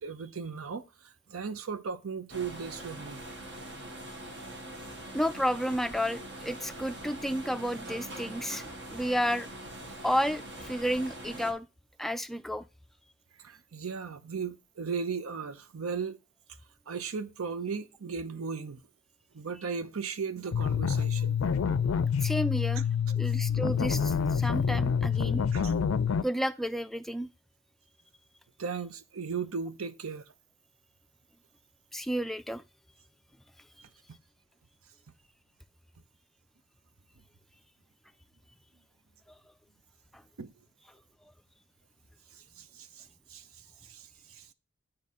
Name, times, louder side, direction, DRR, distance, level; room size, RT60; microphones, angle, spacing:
voice 1, 0.0-3.2 13.4-16.2 16.9-18.8 19.3-21.5 23.1-23.2 25.5-25.7 28.6-30.3 40.4-40.5 42.6-43.5 43.8-44.5, right 5 dB, 90° right, 0.7 m, -37 dB
sound 1, 2.3-11.5, right 1 dB, 60° right, 1.6 m, -43 dB
voice 2, 5.1-8.6 8.9-9.5 10.0-11.7 12.0-12.7 22.2-22.9 23.1-25.4 26.2-27.3 31.9-32.6, equal, ahead, 0.3 m, -31 dB
sound 2, 20.5-26.2, left 7 dB, 70° left, 0.4 m, -27 dB
8.9 x 3.7 x 4.2 m
head